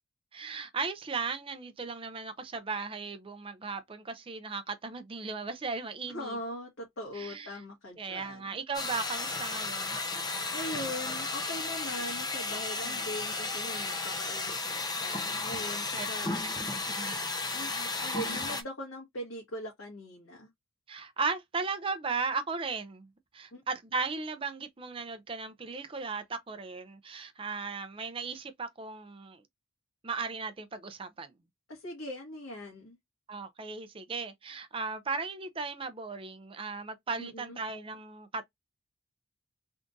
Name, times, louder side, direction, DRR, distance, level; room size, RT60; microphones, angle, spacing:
voice 1, 0.3-6.4 7.1-7.5 8.0-10.0 12.8-13.0 15.9-16.1 16.4-16.5 16.9-17.2 18.1-18.3 20.9-23.1 23.3-29.4 30.0-31.3 33.3-38.5, right 4 dB, 25° right, 0.5 m, -36 dB
voice 2, 6.1-8.6 10.5-16.5 17.5-20.5 23.5-23.6 31.7-33.0 37.2-37.6, left 1 dB, 80° left, 1.5 m, -41 dB
sound 1, 8.7-18.6, left 3 dB, 20° left, 0.6 m, -34 dB
3.5 x 2.5 x 3.8 m
head